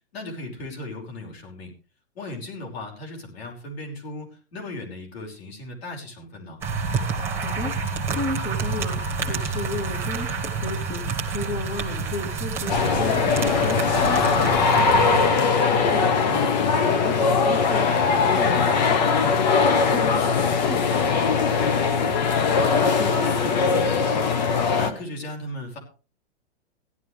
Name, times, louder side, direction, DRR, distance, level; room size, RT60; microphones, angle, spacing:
voice 1, 0.1-1.7 2.2-6.6 16.3-16.6 24.7-25.8, left 1 dB, 60° left, 1 dB, 5.7 m, -36 dB
sound 1, 6.6-15.3, right 4 dB, 5° right, 1.4 m, -28 dB
voice 2, 7.1-16.2 16.6-23.6, left 2 dB, 15° left, 5 dB, 1.1 m, -35 dB
sound 2, 12.7-24.9, left 5 dB, 40° left, 1.2 m, -20 dB
16.5 x 11.5 x 3.4 m, 0.36 s
hypercardioid pair, 175°, 35 cm